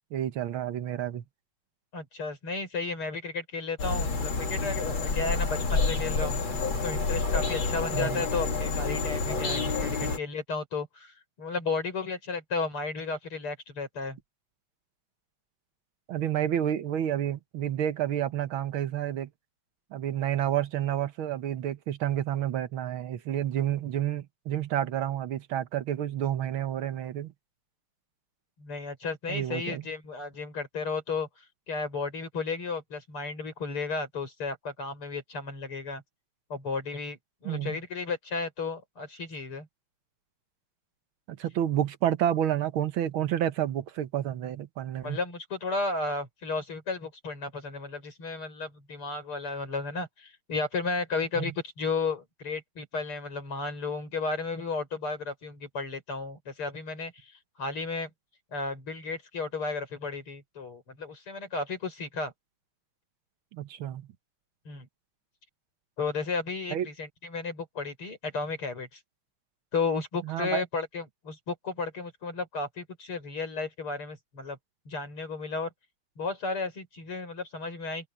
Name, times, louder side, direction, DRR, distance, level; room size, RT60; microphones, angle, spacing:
voice 1, 0.1-1.2 7.9-8.2 10.0-10.1 16.1-19.3 19.9-27.3 29.3-29.8 37.5-37.8 41.3-45.2 51.4-51.5 63.5-64.1 66.7-66.9 70.3-70.6, right 11 dB, 70° right, 1.8 m, -30 dB
voice 2, 1.9-6.4 6.8-14.2 28.6-36.0 36.5-39.7 45.0-57.3 57.6-58.1 58.5-62.3 64.7-64.9 66.0-69.0 69.7-74.6 74.9-75.7 76.2-78.1, left 4 dB, 80° left, 7.4 m, -33 dB
sound 1, 3.8-10.2, left 4 dB, 65° left, 3.5 m, -28 dB
omnidirectional pair, 2.4 m